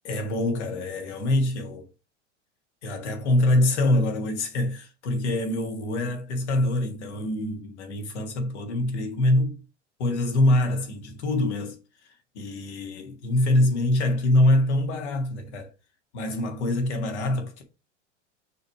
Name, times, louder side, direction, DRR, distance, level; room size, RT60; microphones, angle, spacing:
voice 1, 0.0-1.9 2.8-9.6 10.0-11.8 12.3-15.7 16.1-17.6, left 1 dB, 70° left, 1.8 m, -24 dB
6.2 x 3.3 x 4.6 m
hypercardioid pair, 100°, 36 cm